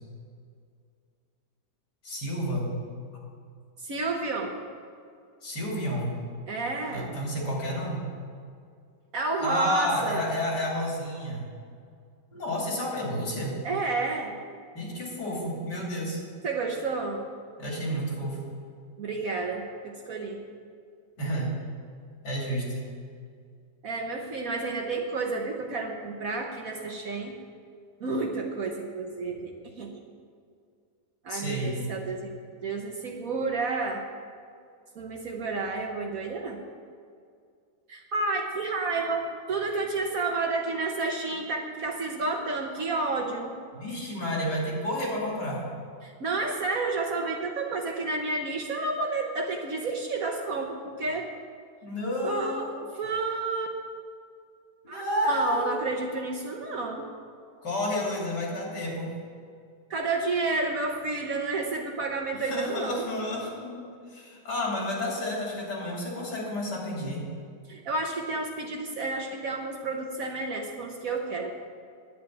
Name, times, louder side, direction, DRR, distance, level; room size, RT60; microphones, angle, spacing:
voice 1, 2.0-2.7 3.1-3.2 5.4-6.2 6.9-8.0 9.4-11.4 12.3-13.5 14.7-16.2 17.6-18.4 21.2-21.5 22.2-22.8 31.3-31.8 43.7-45.6 51.8-52.8 54.8-55.9 57.6-59.1 62.3-63.8 64.1-67.2, left 1 dB, 70° left, -3 dB, 3.5 m, -30 dB
voice 2, 3.8-4.5 6.5-7.1 9.1-10.3 13.6-14.3 16.4-17.2 19.0-20.4 23.8-27.4 28.0-29.9 31.2-32.3 32.6-34.0 34.9-36.6 37.9-43.5 46.0-51.3 52.2-52.6 52.9-53.8 54.9-55.0 55.3-57.1 59.9-63.0 67.7-71.5, right 3 dB, 55° right, 2 dB, 1.4 m, -30 dB
10.0 x 7.6 x 9.6 m, 2.3 s
omnidirectional pair, 1.9 m